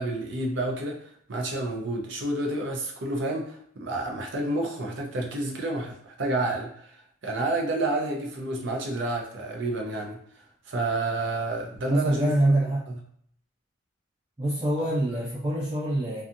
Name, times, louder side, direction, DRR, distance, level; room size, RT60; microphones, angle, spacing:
voice 1, 0.0-10.2 10.7-12.3 12.9-13.0 15.2-15.3, right 2 dB, 60° right, 1 dB, 0.6 m, -30 dB
voice 2, 11.8-12.9 14.4-16.2, right 1 dB, 15° right, -13 dB, 1.0 m, -25 dB
2.6 x 2.3 x 2.6 m, 0.64 s
head